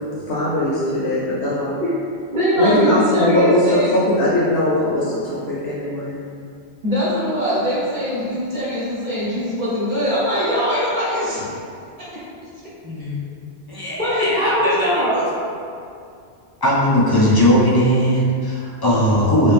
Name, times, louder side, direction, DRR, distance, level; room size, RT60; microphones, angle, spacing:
voice 1, 0.3-1.7 2.6-3.6 3.9-6.2, left 1 dB, 65° left, -8 dB, 1.0 m, -20 dB
voice 2, 2.3-4.0 6.8-11.5 14.0-15.4, equal, 45° right, -10 dB, 1.0 m, -21 dB
voice 3, 12.8-13.2 13.7-15.1 16.6-19.5, equal, 35° left, -6 dB, 0.4 m, -18 dB
3.1 x 2.8 x 3.4 m, 2.4 s
omnidirectional pair, 1.1 m